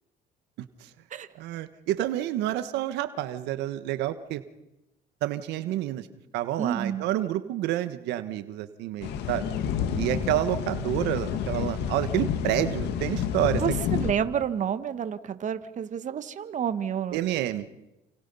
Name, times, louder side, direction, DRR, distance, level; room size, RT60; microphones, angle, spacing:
voice 1, 1.3-4.4 5.2-6.1 6.3-9.4 10.0-13.6 17.1-17.6, right 13 dB, 90° right, 11 dB, 1.3 m, -29 dB
voice 2, 6.6-7.1 13.6-17.2, right 8 dB, 45° right, 11 dB, 1.5 m, -29 dB
sound 1, 9.0-14.1, left 8 dB, 85° left, 2.0 m, -29 dB
29.5 x 28.0 x 5.5 m, 0.92 s
cardioid pair, 110°, 17 cm